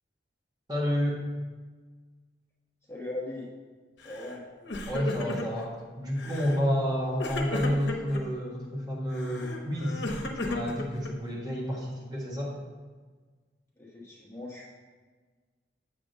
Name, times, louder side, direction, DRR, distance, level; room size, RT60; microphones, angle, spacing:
voice 1, 0.7-1.2 4.9-10.0 10.3-12.5, equal, 25° right, -4 dB, 1.5 m, -30 dB
voice 2, 2.8-3.5 4.0-4.4 13.8-14.7, left 2 dB, 15° left, -5 dB, 1.2 m, -39 dB
Crying sobbing, 4.0-4.4 4.6-5.7 6.2-6.6 7.2-8.2 9.1-11.4, left 1 dB, 85° left, 0.9 m, -35 dB
7.6 x 3.6 x 6.6 m, 1.4 s
head